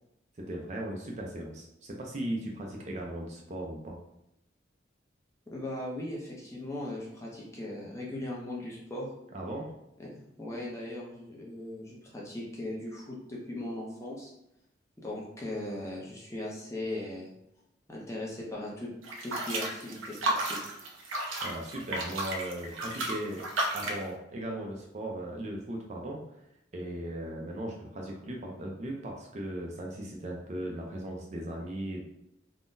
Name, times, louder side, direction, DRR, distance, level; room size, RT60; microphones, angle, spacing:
voice 1, 0.4-4.0 9.3-9.6 21.4-23.4 23.7-26.2 26.7-32.0, right 1 dB, 35° right, -1 dB, 0.4 m, -37 dB
voice 2, 5.5-9.1 10.0-10.1 10.4-14.3 15.0-17.3 17.9-18.9 19.2-20.7, left 1 dB, 15° left, -4 dB, 0.5 m, -38 dB
sound 1, 19.0-24.1, right 2 dB, 85° right, 0.6 m, -33 dB
3.6 x 2.1 x 2.6 m, 0.80 s
head